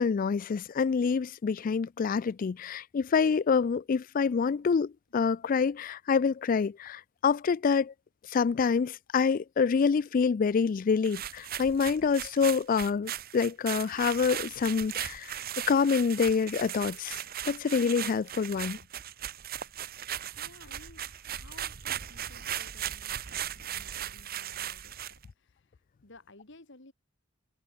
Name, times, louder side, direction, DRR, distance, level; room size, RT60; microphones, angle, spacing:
voice 1, 0.0-7.9 8.3-15.3 15.7-17.2 17.5-18.8, left 5 dB, 40° left, 0.3 m, -27 dB
sound 1, 11.0-25.2, right 10 dB, 45° right, 0.8 m, -38 dB
voice 2, 20.4-26.9, left 2 dB, 55° left, 2.5 m, -56 dB
head